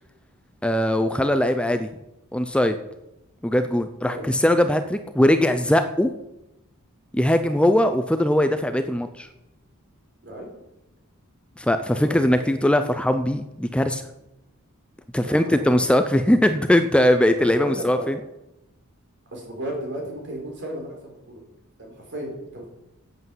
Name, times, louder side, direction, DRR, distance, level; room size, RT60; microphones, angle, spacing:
voice 1, 0.6-1.9 2.3-2.8 3.4-6.1 7.1-9.3 11.6-14.0 15.1-18.2, left 1 dB, 5° left, 9 dB, 0.5 m, -20 dB
voice 2, 11.9-12.6 15.2-15.8 17.3-18.1 19.3-21.4 21.8-22.7, right 1 dB, 55° right, 1 dB, 4.4 m, -34 dB
9.6 x 8.1 x 7.8 m, 0.91 s
head